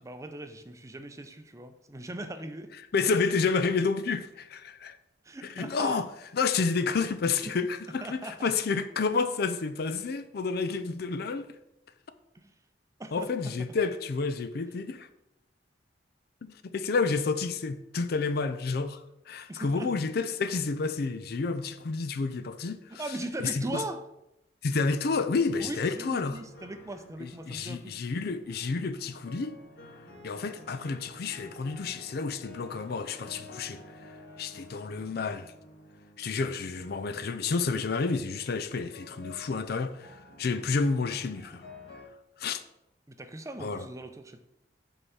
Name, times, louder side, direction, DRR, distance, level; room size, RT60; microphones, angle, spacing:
voice 1, 0.0-2.7 5.2-6.0 8.0-8.5 12.3-12.5 13.0-13.7 19.5-19.9 23.0-24.0 25.6-28.0 43.1-44.4, right 2 dB, 20° right, 0.5 m, -39 dB
voice 2, 2.9-5.0 5.4-6.1 6.3-11.6 13.1-15.1 16.4-23.0 23.4-23.8 24.6-26.4 27.2-29.6 30.2-33.8 34.4-35.5 36.2-41.6 42.4-42.6 43.6-43.9, left 4 dB, 60° left, 0.5 m, -30 dB
sound 1, 26.2-42.1, left 1 dB, 75° left, 1.7 m, -51 dB
5.5 x 4.7 x 5.6 m
head